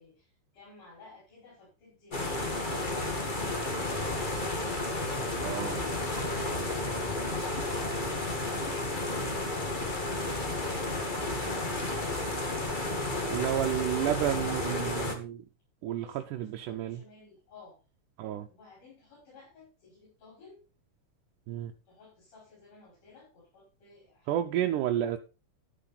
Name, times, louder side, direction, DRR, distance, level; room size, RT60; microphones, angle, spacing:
voice 1, 0.0-4.5 5.1-5.8 12.5-15.0 15.8-17.8 18.5-20.6 21.9-24.6, left 3 dB, 75° left, 6.8 m, -54 dB
sound 1, 2.1-15.1, left 2 dB, 25° left, 1.1 m, -32 dB
voice 2, 5.4-5.8 13.3-15.4 15.8-17.0 18.2-18.5 21.5-21.7 24.3-25.2, right 12 dB, 80° right, 2.3 m, -31 dB
11.0 x 9.2 x 4.2 m
omnidirectional pair, 3.7 m